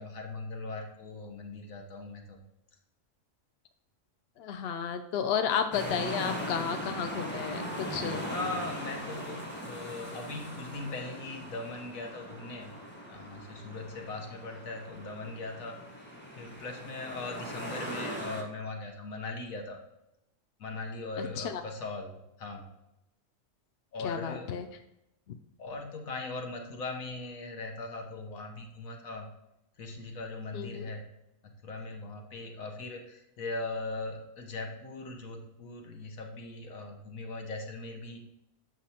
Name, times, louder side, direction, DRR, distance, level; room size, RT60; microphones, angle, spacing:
voice 1, 0.0-2.4 8.3-12.7 13.1-15.8 16.4-19.8 20.6-22.1 22.4-22.7 23.9-24.5 25.6-29.3 29.8-31.1 31.6-38.2, left 3 dB, 85° left, 2 dB, 1.5 m, -39 dB
voice 2, 4.4-8.3 21.2-21.6 24.0-24.7 30.5-30.9, left 7 dB, 65° left, 7 dB, 0.6 m, -32 dB
sound 1, 5.7-18.4, equal, 10° left, 1.1 m, -40 dB
8.2 x 6.2 x 2.8 m, 0.90 s
omnidirectional pair, 1.4 m